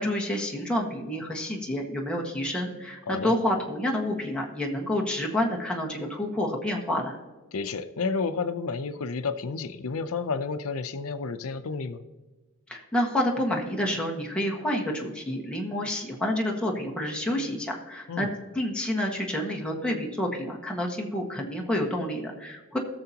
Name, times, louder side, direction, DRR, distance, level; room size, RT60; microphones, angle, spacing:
voice 1, 0.0-7.2 12.7-18.3 18.5-22.8, left 1 dB, 5° left, -2 dB, 1.6 m, -29 dB
voice 2, 7.5-12.0 18.1-18.3, left 4 dB, 85° left, 10 dB, 0.6 m, -31 dB
19.0 x 6.8 x 2.9 m, 1.2 s
head